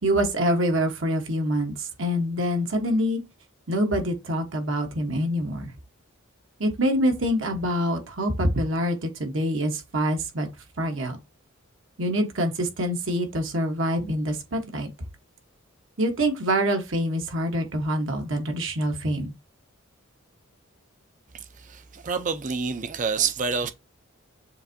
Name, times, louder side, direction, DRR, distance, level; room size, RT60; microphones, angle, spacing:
voice 1, 0.0-3.2 3.7-5.7 6.6-10.5 10.8-11.2 12.0-14.9 16.0-19.3, equal, 65° right, 1.1 m, -25 dB
voice 2, 21.7-23.7, right 5 dB, 35° right, 0.5 m, -27 dB
7.0 x 2.6 x 2.6 m
head